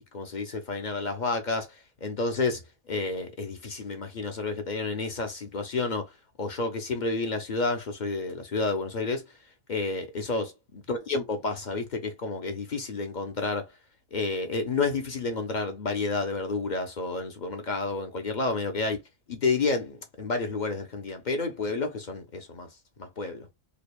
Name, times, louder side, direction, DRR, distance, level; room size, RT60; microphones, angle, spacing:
voice 1, 0.0-6.1 6.4-9.3 9.7-13.7 14.1-19.0 19.3-22.7 23.0-23.5, left 3 dB, 45° left, 0.6 m, -30 dB
4.9 x 2.3 x 2.3 m
omnidirectional pair, 1.5 m